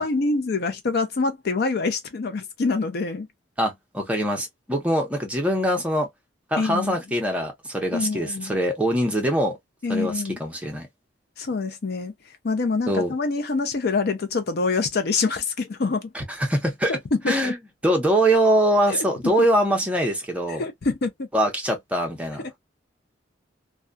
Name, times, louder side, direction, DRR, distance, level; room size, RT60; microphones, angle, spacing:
voice 1, 0.0-3.3 6.6-7.0 7.9-8.6 9.8-10.4 11.4-12.1 12.4-16.1 16.9-17.5 18.9-19.0 20.5-21.3 22.4-22.6, left 3 dB, 55° left, 0.5 m, -25 dB
voice 2, 3.6-6.1 6.5-9.6 9.9-10.9 12.9-13.1 16.1-17.0 17.3-17.6 17.8-20.6 21.3-22.4, right 1 dB, 5° right, 0.8 m, -23 dB
2.3 x 2.2 x 2.5 m
head